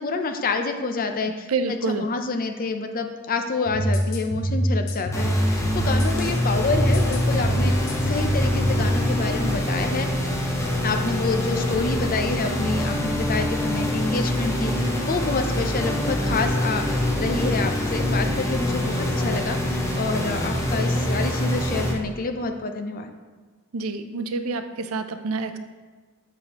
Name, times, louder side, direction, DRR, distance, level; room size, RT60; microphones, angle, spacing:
voice 1, 0.0-7.8 8.0-10.1 10.8-23.1, left 3 dB, 45° left, 6 dB, 0.6 m, -28 dB
voice 2, 1.2-2.1 23.7-25.6, right 4 dB, 90° right, 9 dB, 0.5 m, -28 dB
sound 1, 3.7-8.9, equal, 65° left, 1.0 m, -24 dB
sound 2, 5.1-21.9, left 1 dB, 15° left, 0.8 m, -25 dB
6.9 x 6.5 x 2.9 m, 1.4 s
head